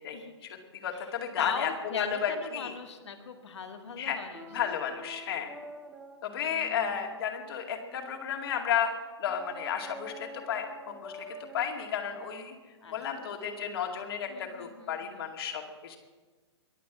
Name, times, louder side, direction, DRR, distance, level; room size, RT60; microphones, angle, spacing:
voice 1, 0.0-2.7 4.0-4.2 4.5-5.5 6.2-8.9 9.2-12.5 12.9-16.0, left 8 dB, 55° left, 3 dB, 2.3 m, -33 dB
voice 2, 0.9-4.8 12.8-13.2 14.3-15.3, left 6 dB, 75° left, 5 dB, 1.8 m, -40 dB
sound 1, 4.3-8.5 9.2-14.0, right 1 dB, 5° right, 1.0 m, -49 dB
22.5 x 8.4 x 6.1 m, 1.4 s
hypercardioid pair, 120°, 15 cm